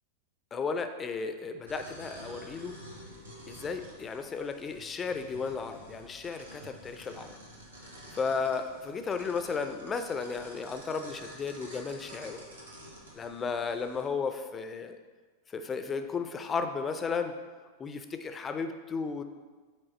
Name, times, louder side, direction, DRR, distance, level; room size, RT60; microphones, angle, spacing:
voice 1, 0.5-2.8 3.5-7.4 8.1-12.4 13.1-15.0 15.5-17.3 17.8-19.2, left 5 dB, 20° left, 8 dB, 0.5 m, -34 dB
sound 1, 1.7-14.0, right 1 dB, 80° right, 1.5 m, -49 dB
7.4 x 4.6 x 4.2 m, 1.4 s
figure-of-eight pair, 90°, 0 cm